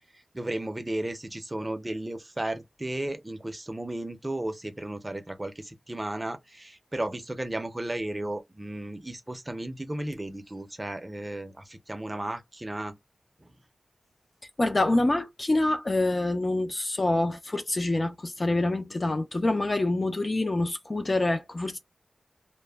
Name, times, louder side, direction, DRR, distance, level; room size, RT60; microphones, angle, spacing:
voice 1, 0.3-13.0 13.4-13.5, right 1 dB, 20° right, 0.5 m, -34 dB
voice 2, 14.6-21.8, left 2 dB, 35° left, 0.4 m, -26 dB
2.1 x 2.0 x 3.3 m
wide cardioid pair, 100°, 0 cm